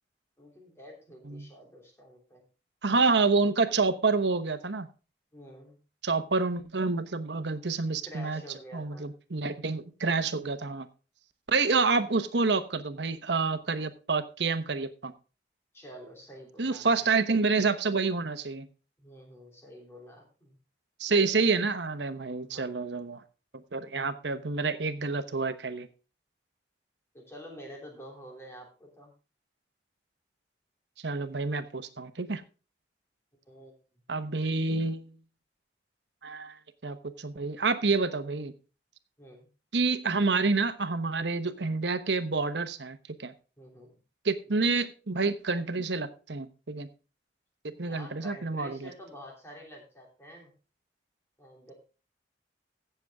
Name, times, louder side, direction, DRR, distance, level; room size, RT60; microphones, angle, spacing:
voice 1, 0.4-2.4 5.3-5.8 8.0-9.1 15.7-17.1 19.0-20.6 22.4-22.9 27.1-29.1 33.5-33.7 39.2-39.5 43.6-43.9 47.8-50.5 51.4-51.7, equal, 15° left, 0 dB, 3.2 m, -48 dB
voice 2, 2.8-4.9 6.0-8.4 8.7-10.9 11.5-15.1 16.6-18.7 21.0-23.2 23.7-25.9 31.0-32.4 34.1-35.1 36.2-36.6 36.8-38.5 39.7-43.3 44.2-46.9 47.6-48.9, right 4 dB, 80° right, 11 dB, 1.0 m, -28 dB
15.5 x 6.9 x 3.6 m, 0.34 s
head